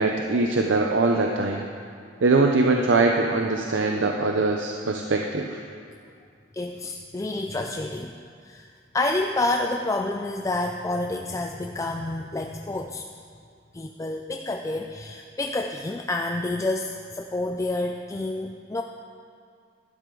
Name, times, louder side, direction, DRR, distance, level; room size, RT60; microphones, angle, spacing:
voice 1, 0.0-1.6 2.2-5.6, right 3 dB, 85° right, 2 dB, 0.7 m, -22 dB
voice 2, 6.5-8.1 8.4-13.1 13.7-18.8, left 2 dB, 15° left, 3 dB, 0.3 m, -29 dB
12.5 x 12.0 x 3.8 m, 2.3 s
head